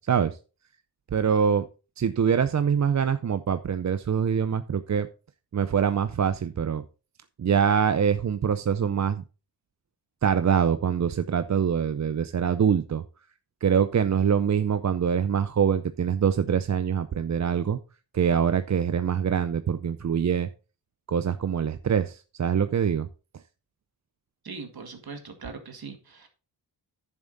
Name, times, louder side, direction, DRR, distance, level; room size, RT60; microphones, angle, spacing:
voice 1, 0.1-0.4 1.1-1.7 2.0-5.1 5.5-6.8 7.4-9.2 10.2-13.0 13.6-17.8 18.1-20.5 21.1-23.1, right 7 dB, 40° right, 0.5 m, -24 dB
voice 2, 24.4-26.3, right 4 dB, 55° right, 2.1 m, -40 dB
10.0 x 7.2 x 3.9 m
wide cardioid pair, 115°, 42 cm